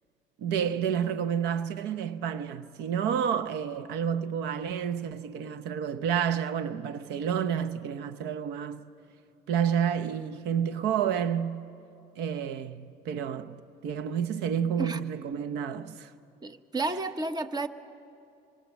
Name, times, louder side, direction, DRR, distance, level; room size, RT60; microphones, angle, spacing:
voice 1, 0.4-8.9 9.5-11.7 12.2-13.6 13.8-16.1, right 8 dB, 85° right, 0.8 m, -30 dB
voice 2, 16.4-17.7, right 3 dB, 25° right, 1.0 m, -31 dB
26.0 x 22.0 x 7.2 m
cardioid pair, 110°, 17 cm